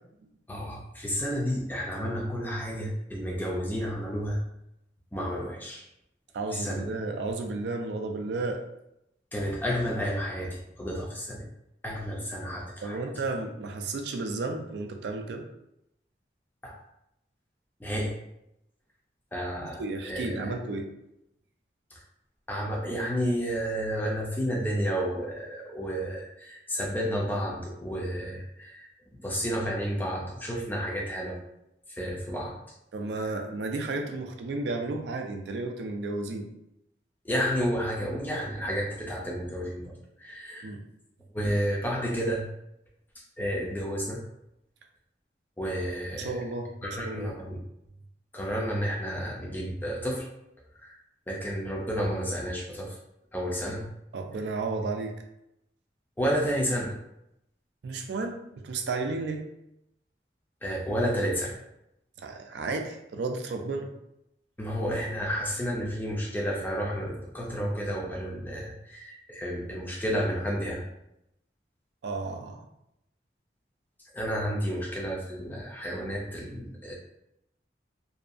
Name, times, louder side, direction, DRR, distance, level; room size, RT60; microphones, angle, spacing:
voice 1, 0.5-4.4 5.1-5.8 6.5-6.9 9.3-11.5 11.8-13.1 16.6-16.8 17.8-18.2 19.3-20.6 21.9-22.0 22.5-31.4 31.9-32.6 33.2-33.3 37.2-40.7 41.3-42.5 43.1-44.2 45.6-46.5 46.8-47.6 48.3-50.3 50.7-51.0 51.3-53.0 53.3-53.9 56.2-56.9 60.6-61.6 64.6-70.8 74.1-77.0, equal, 10° left, -2 dB, 0.4 m, -31 dB
voice 2, 6.3-8.6 12.8-15.5 19.6-20.9 32.9-36.5 40.6-40.9 46.2-47.3 54.1-55.2 57.8-59.4 62.2-63.9 72.0-72.7, right 3 dB, 75° right, 4 dB, 0.3 m, -33 dB
2.6 x 2.3 x 2.4 m, 0.82 s
head